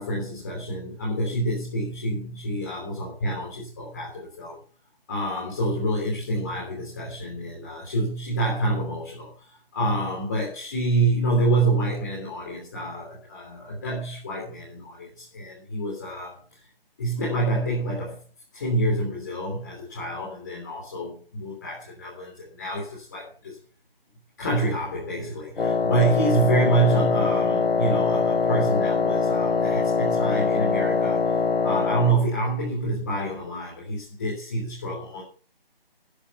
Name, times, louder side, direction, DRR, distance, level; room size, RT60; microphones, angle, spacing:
voice 1, 0.0-4.6 5.1-16.4 17.0-18.2 18.5-23.6 24.4-31.4 31.6-35.2, right 2 dB, 20° left, -5 dB, 3.6 m, -27 dB
Wind instrument woodwind instrument, 25.6-32.2, left 4 dB, 80° left, 1.0 m, -23 dB
14.0 x 10.5 x 5.7 m, 0.38 s
figure-of-eight pair, 175°, 29 cm